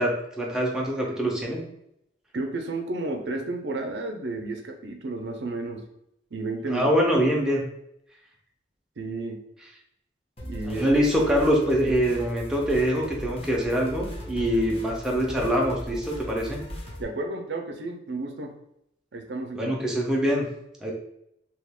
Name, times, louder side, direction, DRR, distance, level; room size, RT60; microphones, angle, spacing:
voice 1, 0.0-1.6 6.7-7.6 10.7-16.6 19.6-20.5 20.8-20.9, equal, 5° right, -2 dB, 0.5 m, -24 dB
voice 2, 2.3-5.8 6.3-6.9 9.0-9.4 10.4-10.8 17.0-18.5 19.1-19.7, right 2 dB, 70° right, 3 dB, 0.5 m, -32 dB
sound 1, 10.4-17.0, equal, 35° left, 0.7 m, -38 dB
2.9 x 2.4 x 3.5 m, 0.77 s
head